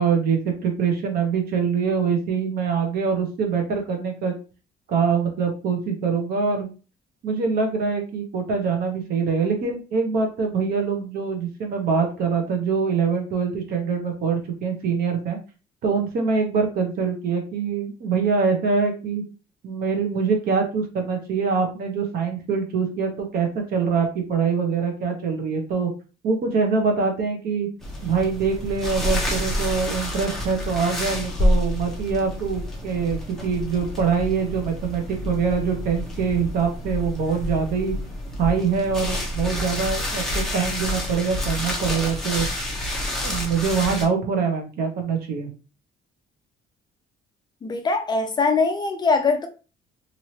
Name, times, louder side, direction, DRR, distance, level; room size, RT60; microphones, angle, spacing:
voice 1, 0.0-4.3 4.9-6.7 7.2-15.4 15.8-19.2 19.6-25.9 26.2-27.7 28.0-37.9 38.4-42.5 43.2-45.5, right 5 dB, 60° right, 0.9 m, -24 dB
sound 1, 27.8-44.1, left 1 dB, ahead, 0.8 m, -28 dB
voice 2, 47.6-49.5, left 4 dB, 25° left, 0.4 m, -22 dB
3.1 x 2.7 x 2.8 m
cardioid pair, 160°, 18 cm